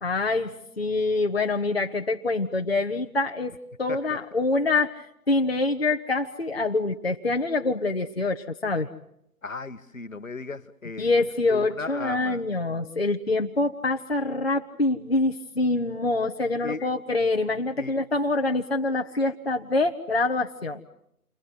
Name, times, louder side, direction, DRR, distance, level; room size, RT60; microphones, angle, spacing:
voice 1, 0.0-3.5 3.8-8.9 11.0-20.8, left 3 dB, 40° left, 4 dB, 1.0 m, -25 dB
voice 2, 9.4-11.0 11.5-12.4 16.6-16.8 17.8-17.9, left 4 dB, 55° left, 13 dB, 1.2 m, -36 dB
29.0 x 22.5 x 7.8 m, 0.76 s
figure-of-eight pair, 160°, 46 cm